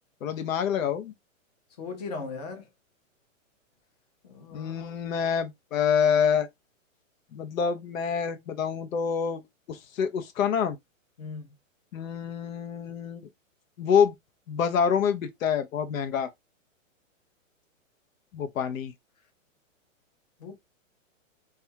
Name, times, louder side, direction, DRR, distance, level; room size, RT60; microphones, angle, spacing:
voice 1, 0.2-1.1 4.5-6.5 7.3-9.4 9.7-10.8 11.9-13.3 13.8-14.1 14.5-16.3 18.3-18.9, left 7 dB, 80° left, 0.7 m, -26 dB
voice 2, 1.8-2.7 4.2-5.0 11.2-11.5 20.4-20.6, left 4 dB, 30° left, 0.6 m, -38 dB
2.4 x 2.3 x 2.7 m
hypercardioid pair, 175°, 40 cm